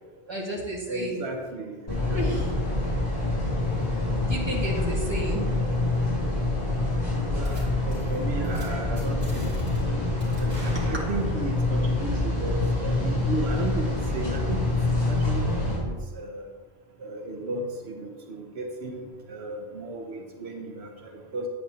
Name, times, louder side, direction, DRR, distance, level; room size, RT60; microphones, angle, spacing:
voice 1, 0.3-1.2 2.1-2.5 4.1-5.4 10.7-10.8, right 1 dB, 25° right, -4 dB, 1.7 m, -32 dB
voice 2, 0.9-2.2 7.3-9.5 10.4-14.6 15.1-16.4 17.0-21.5, right 2 dB, 85° right, 2 dB, 1.2 m, -35 dB
sound 1, 1.9-15.8, left 2 dB, 40° left, 3.0 m, -26 dB
sound 2, 7.4-7.6 7.9-8.1 8.4-8.6 9.0-9.8 10.2-11.5, right 1 dB, 40° right, 2.7 m, -42 dB
9.0 x 8.4 x 2.9 m, 1.4 s
omnidirectional pair, 1.1 m